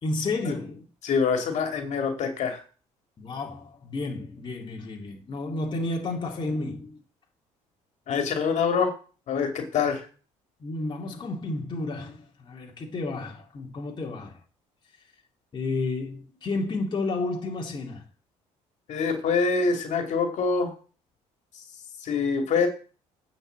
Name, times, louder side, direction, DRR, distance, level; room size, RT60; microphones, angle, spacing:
voice 1, 0.0-0.8 3.2-7.0 10.6-14.4 15.5-18.0, left 2 dB, 35° left, 2.5 m, -31 dB
voice 2, 1.0-2.6 8.1-8.9 9.3-10.0 18.9-20.7 21.5-21.6 22.0-22.7, left 5 dB, 60° left, 2.7 m, -25 dB
9.8 x 5.4 x 7.7 m
cardioid pair, 105°, 13 cm